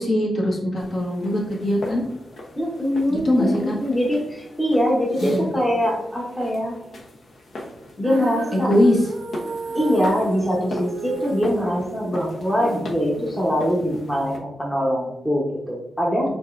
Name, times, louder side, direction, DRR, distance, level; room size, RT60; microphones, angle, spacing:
voice 1, 0.0-2.0 3.1-3.7 5.2-5.5 8.5-9.0, left 1 dB, 50° left, -3 dB, 1.4 m, -21 dB
sound 1, 0.7-14.4, left 1 dB, 75° left, 0.9 m, -39 dB
voice 2, 2.6-3.5 3.8-6.8 8.0-8.7 9.7-16.3, equal, 10° left, -3 dB, 1.0 m, -23 dB
Female singing, 8.0-14.3, right 5 dB, 85° right, 0.4 m, -35 dB
5.2 x 3.9 x 2.5 m, 0.86 s
wide cardioid pair, 105°, 0 cm